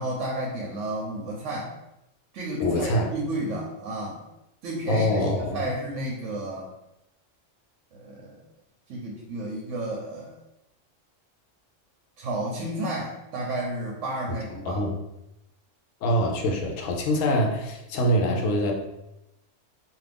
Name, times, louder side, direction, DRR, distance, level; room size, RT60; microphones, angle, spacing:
voice 1, 0.0-1.7 2.3-4.2 4.6-6.7 7.9-8.4 8.9-10.3 12.2-14.8, right 1 dB, 75° right, -2 dB, 0.9 m, -32 dB
voice 2, 2.6-3.1 4.9-5.6 14.7-14.9 16.0-18.7, equal, 90° left, 1 dB, 1.0 m, -24 dB
2.6 x 2.4 x 3.4 m, 0.89 s
omnidirectional pair, 1.3 m